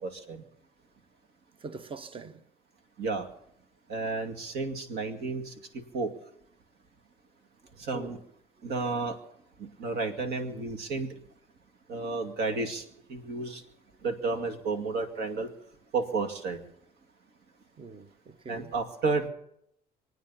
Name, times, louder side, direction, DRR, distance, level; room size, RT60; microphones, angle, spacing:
voice 1, 0.0-0.4 3.0-3.2 3.9-5.5 5.9-6.1 7.8-8.2 8.6-9.2 9.6-11.1 11.9-12.8 13.1-13.6 14.0-15.5 15.9-16.6 18.5-19.3, right 3 dB, 75° right, 2.3 m, -31 dB
voice 2, 1.6-2.5 7.9-8.2 17.8-18.7, right 4 dB, 30° right, 1.0 m, -43 dB
26.5 x 9.3 x 5.7 m
cardioid pair, 110°, 17 cm